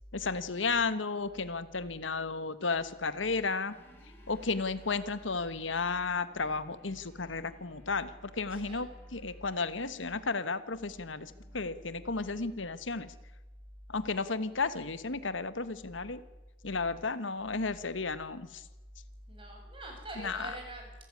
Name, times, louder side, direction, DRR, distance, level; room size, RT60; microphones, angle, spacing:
voice 1, 0.1-3.7 4.3-13.1 13.9-16.2 16.6-18.6 20.2-20.5, left 4 dB, 85° left, 13 dB, 1.3 m, -33 dB
sound 1, 3.6-13.0, right 1 dB, 10° left, 5.8 m, -62 dB
voice 2, 8.5-8.8 19.3-20.9, right 1 dB, 25° right, 2 dB, 6.5 m, -44 dB
27.5 x 14.0 x 9.6 m, 1.1 s
head